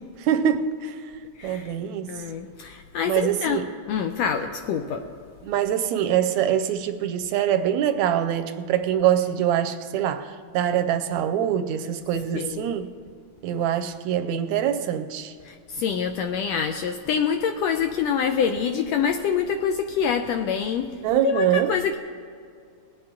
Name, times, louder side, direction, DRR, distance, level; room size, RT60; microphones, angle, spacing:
voice 1, 0.2-1.0 1.4-2.1 3.1-3.7 5.4-12.9 13.4-15.3 21.0-21.7, right 10 dB, 80° right, 8 dB, 1.8 m, -24 dB
voice 2, 1.4-1.7 2.1-3.6 3.9-5.0 12.3-12.7 15.4-20.9 21.2-22.0, left 7 dB, 80° left, 6 dB, 1.5 m, -26 dB
20.5 x 8.8 x 3.7 m, 2.3 s
omnidirectional pair, 3.5 m